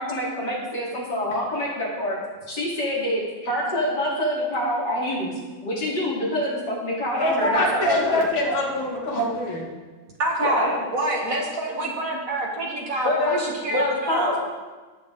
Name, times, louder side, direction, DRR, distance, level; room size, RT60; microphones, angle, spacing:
voice 1, 0.0-2.2 2.5-5.3 5.6-8.2 10.4-10.7 13.0-13.4 13.7-14.5, left 1 dB, 55° left, -6 dB, 3.8 m, -26 dB
voice 2, 7.1-9.7, left 1 dB, 70° left, -2 dB, 2.7 m, -24 dB
voice 3, 10.2-14.3, right 1 dB, 45° right, -1 dB, 2.1 m, -27 dB
18.0 x 6.4 x 3.7 m, 1.3 s
omnidirectional pair, 2.3 m